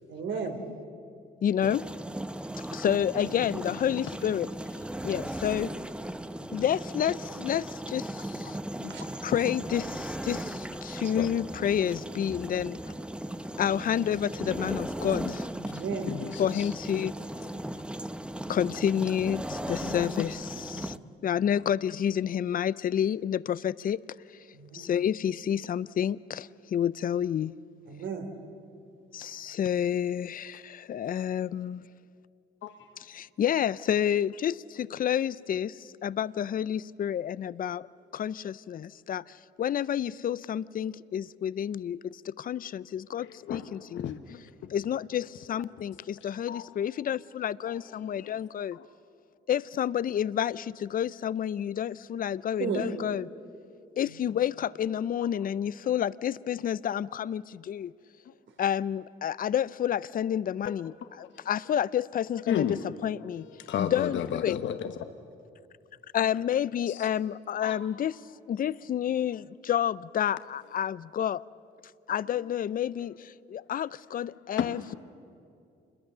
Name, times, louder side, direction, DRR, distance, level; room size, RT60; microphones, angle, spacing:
voice 1, 0.1-0.7 8.9-9.0 11.0-11.1 15.6-16.1 20.7-21.0 24.5-24.9 27.9-28.3 52.6-52.8 54.0-54.1, right 5 dB, 70° right, 3.0 m, -35 dB
voice 2, 1.4-1.8 2.6-4.5 5.0-5.7 6.5-8.9 9.2-12.8 13.6-15.5 16.4-17.2 18.5-20.9 21.2-24.0 24.7-27.6 29.1-31.8 33.0-37.9 38.1-44.2 44.7-48.8 49.5-53.3 54.0-57.9 58.6-63.5 63.8-64.6 66.1-68.2 68.5-71.4 72.1-74.8, left 9 dB, 45° left, 0.5 m, -29 dB
sound 1, 1.6-21.0, right 1 dB, 5° right, 0.7 m, -37 dB
voice 3, 16.1-16.7 19.8-19.9 32.6-32.7 43.2-44.7 46.2-46.6 48.1-48.3 48.7-48.9 58.3-58.4 62.5-62.8 63.6-64.9 66.9-67.1 67.6-67.8 74.6-74.9, left 9 dB, 70° left, 1.0 m, -33 dB
27.5 x 21.5 x 6.7 m
cardioid pair, 90°, 20 cm